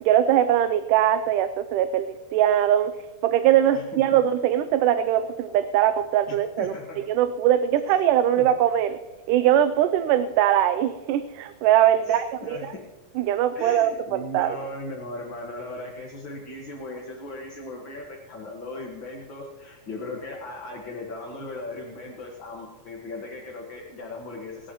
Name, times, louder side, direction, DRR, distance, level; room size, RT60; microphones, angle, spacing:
voice 1, 0.0-2.9 3.2-6.7 7.1-9.0 9.3-12.7 13.2-14.6, right 11 dB, 85° right, 10 dB, 2.1 m, -21 dB
voice 2, 3.7-4.2 6.3-7.0 7.9-8.0 8.4-8.5 12.0-12.8 13.5-24.7, left 2 dB, 45° left, -2 dB, 2.0 m, -38 dB
20.0 x 17.0 x 3.1 m, 1.2 s
omnidirectional pair, 3.7 m